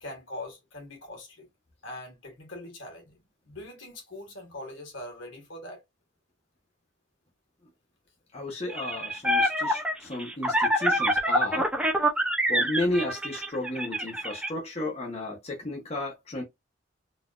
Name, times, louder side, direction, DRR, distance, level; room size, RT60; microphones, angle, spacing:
voice 1, 0.0-1.5 1.8-5.8, left 1 dB, 75° left, 1.8 m, -42 dB
voice 2, 8.3-11.7 12.5-16.4, left 2 dB, 30° left, 1.0 m, -33 dB
sound 1, 8.7-14.5, equal, 5° right, 0.6 m, -26 dB
4.0 x 2.6 x 2.4 m
head